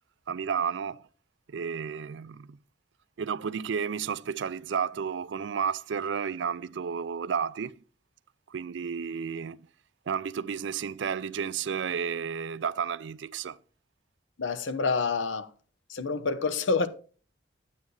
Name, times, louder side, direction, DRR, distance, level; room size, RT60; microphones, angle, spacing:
voice 1, 0.3-1.0 1.5-2.6 3.2-7.8 8.5-9.6 10.1-13.6, right 6 dB, 70° right, 0.4 m, -32 dB
voice 2, 14.4-15.5 15.9-16.9, left 4 dB, 80° left, 0.8 m, -27 dB
9.3 x 9.1 x 3.2 m
head